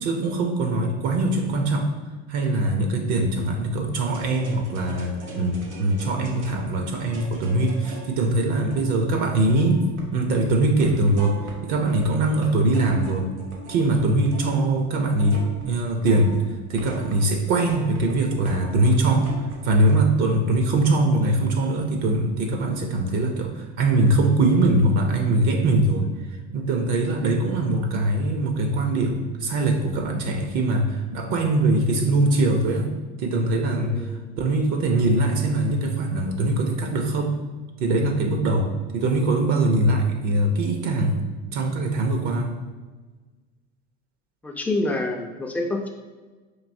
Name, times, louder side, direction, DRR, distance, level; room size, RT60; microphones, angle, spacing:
voice 1, 0.0-1.9 2.3-9.8 10.1-13.3 13.7-16.3 16.7-19.3 19.6-26.1 26.5-32.9 33.2-34.0 34.4-37.3 37.8-41.3 41.5-42.5, right 2 dB, 55° right, 3 dB, 0.7 m, -22 dB
sound 1, 4.0-10.4 10.8-12.1 12.4-19.9, right 1 dB, 85° right, 1.0 m, -40 dB
voice 2, 33.8-34.2 44.4-45.9, left 2 dB, 5° left, 2 dB, 0.4 m, -27 dB
4.6 x 2.7 x 2.6 m, 1.3 s
supercardioid pair, 95°, 33 cm